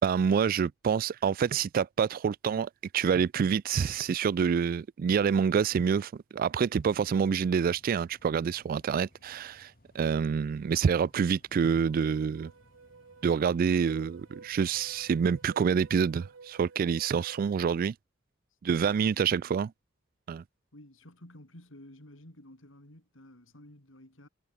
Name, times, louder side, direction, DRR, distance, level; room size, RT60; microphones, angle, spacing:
voice 1, 0.0-12.5 13.2-17.9 18.6-19.7 20.3-20.4, right 6 dB, 45° right, 0.3 m, -27 dB
Mechanical fan, 6.2-16.7, left 1 dB, 45° left, 2.8 m, -64 dB
sound 1, 11.6-17.6, right 4 dB, 80° right, 0.8 m, -53 dB
voice 2, 18.6-19.6 20.7-24.3, left 1 dB, 75° left, 5.1 m, -53 dB
head